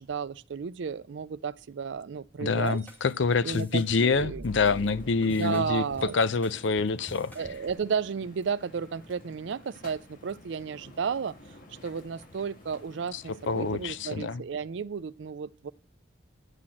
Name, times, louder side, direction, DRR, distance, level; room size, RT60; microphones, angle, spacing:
voice 1, 0.0-2.8 3.4-4.4 4.8-4.9 5.2-6.2 7.4-11.4 11.8-15.7, right 6 dB, 70° right, 0.4 m, -33 dB
voice 2, 2.4-5.8 6.1-7.3 13.1-14.4, left 4 dB, 75° left, 0.6 m, -26 dB
sound 1, 2.7-7.7, right 1 dB, 10° left, 2.6 m, -46 dB
sound 2, 4.5-14.1, left 1 dB, 45° left, 1.9 m, -50 dB
9.9 x 5.9 x 7.5 m
head